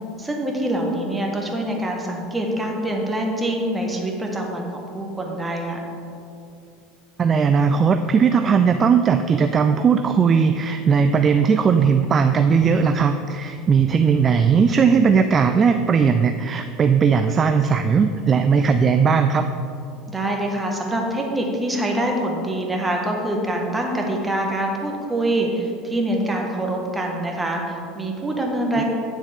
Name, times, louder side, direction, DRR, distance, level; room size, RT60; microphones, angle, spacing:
voice 1, 0.2-5.8 20.1-28.8, right 1 dB, 15° right, 0 dB, 1.6 m, -25 dB
voice 2, 7.2-19.5 28.8-28.9, right 6 dB, 30° right, 8 dB, 0.3 m, -18 dB
9.4 x 7.1 x 3.7 m, 2.5 s
hypercardioid pair, 75°, 0 cm